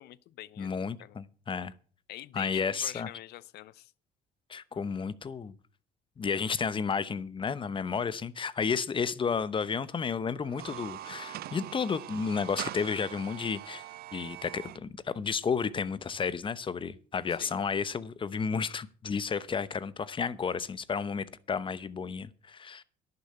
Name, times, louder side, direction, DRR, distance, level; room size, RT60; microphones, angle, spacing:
voice 1, 0.0-1.2 2.1-3.9 17.4-17.6, left 15 dB, 75° left, 0.7 m, -46 dB
voice 2, 0.6-1.7 2.3-3.1 4.5-5.5 6.2-13.8 14.1-22.8, left 6 dB, 30° left, 0.8 m, -32 dB
sound 1, 10.4-14.8, right 14 dB, 65° right, 0.5 m, -42 dB
11.0 x 6.9 x 7.9 m
cardioid pair, 110°, 17 cm